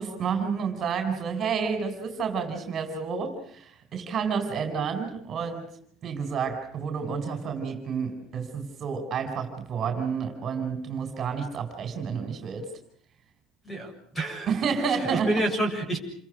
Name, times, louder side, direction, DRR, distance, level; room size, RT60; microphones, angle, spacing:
voice 1, 0.0-5.7 6.0-12.7 14.5-15.4, right 6 dB, 35° right, 7 dB, 4.5 m, -30 dB
voice 2, 13.7-14.5 15.1-16.0, right 1 dB, 10° left, 5 dB, 7.1 m, -28 dB
29.0 x 23.5 x 6.3 m, 0.62 s
cardioid pair, 145°, 0 cm